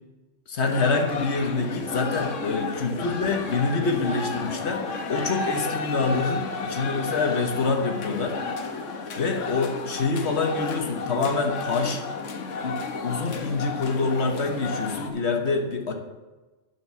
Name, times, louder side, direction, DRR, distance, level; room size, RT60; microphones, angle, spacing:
voice 1, 0.5-8.4 9.2-12.0 12.6-15.9, left 4 dB, 65° left, 4 dB, 1.4 m, -26 dB
sound 1, 0.6-15.1, left 4 dB, 80° left, 1.2 m, -32 dB
9.6 x 5.1 x 6.9 m, 1.2 s
omnidirectional pair, 1.3 m